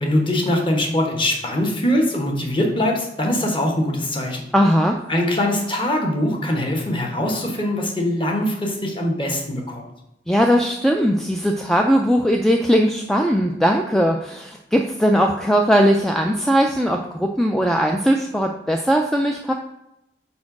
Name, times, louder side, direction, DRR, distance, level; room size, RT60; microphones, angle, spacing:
voice 1, 0.0-4.5 5.1-9.8, left 1 dB, 30° left, 1 dB, 1.1 m, -22 dB
voice 2, 4.5-5.0 10.3-19.5, equal, ahead, 2 dB, 0.3 m, -19 dB
4.8 x 4.3 x 5.9 m, 0.86 s
head